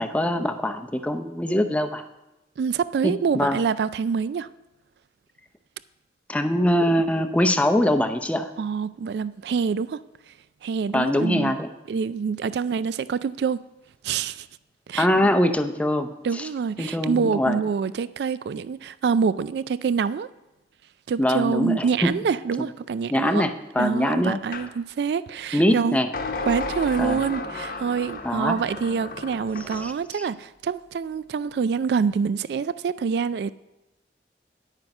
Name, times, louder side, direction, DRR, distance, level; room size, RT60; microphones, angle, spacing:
voice 1, 0.0-2.0 3.0-3.6 6.3-8.5 10.9-11.7 15.0-16.5 16.8-17.6 21.2-22.1 23.1-24.4 25.5-26.1 27.0-27.2 28.2-28.5 29.8-30.2, left 1 dB, 10° left, 0.5 m, -23 dB
voice 2, 2.6-4.5 8.6-10.0 10.6-11.6 11.9-13.6 14.0-14.5 14.9-15.1 16.2-20.3 21.1-23.5 23.8-26.0 26.5-33.5, right 6 dB, 70° right, 0.3 m, -26 dB
sound 1, 24.5-24.7 26.1-29.9, left 2 dB, 55° left, 1.0 m, -33 dB
9.8 x 9.0 x 5.3 m
head